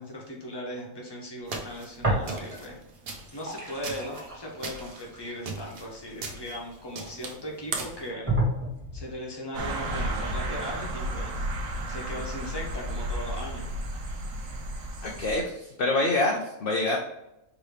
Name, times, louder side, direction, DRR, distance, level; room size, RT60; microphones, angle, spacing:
voice 1, 0.0-2.8 3.3-8.3 8.9-11.3 11.9-13.7, left 1 dB, 20° left, -2 dB, 1.0 m, -38 dB
sound 1, 1.5-8.1, right 4 dB, 50° right, 0.9 m, -39 dB
sound 2, 2.0-2.8 3.1-7.1 7.6-7.7 8.3-9.2, right 1 dB, 25° right, 1.5 m, -31 dB
sound 3, 9.5-15.4, right 1 dB, 75° right, 1.2 m, -33 dB
voice 2, 15.0-17.0, left 2 dB, 55° left, -1 dB, 0.7 m, -26 dB
4.8 x 3.0 x 3.3 m, 0.88 s
omnidirectional pair, 1.4 m